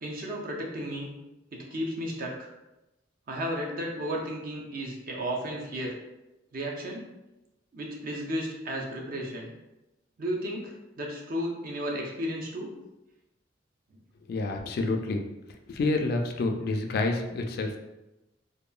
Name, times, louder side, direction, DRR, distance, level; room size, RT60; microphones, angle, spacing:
voice 1, 0.0-1.1 1.5-2.5 3.3-6.0 6.5-7.1 7.7-9.5 10.2-12.7 13.9-14.0, equal, 50° right, -1 dB, 0.5 m, -33 dB
voice 2, 14.3-15.2 15.7-17.8, left 2 dB, 55° left, 4 dB, 0.3 m, -28 dB
2.8 x 2.2 x 2.3 m, 0.97 s
head